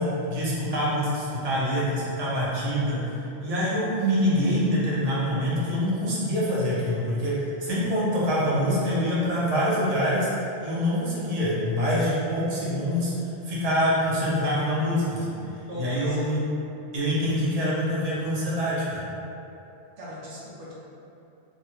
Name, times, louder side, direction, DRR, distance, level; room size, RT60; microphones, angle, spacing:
voice 1, 0.0-10.3 10.6-13.1 13.4-16.4 16.9-19.0, equal, 40° right, -7 dB, 0.7 m, -25 dB
voice 2, 15.7-16.3 20.0-20.7, left 1 dB, 80° right, -7 dB, 0.9 m, -37 dB
2.5 x 2.3 x 3.0 m, 2.8 s
omnidirectional pair, 1.1 m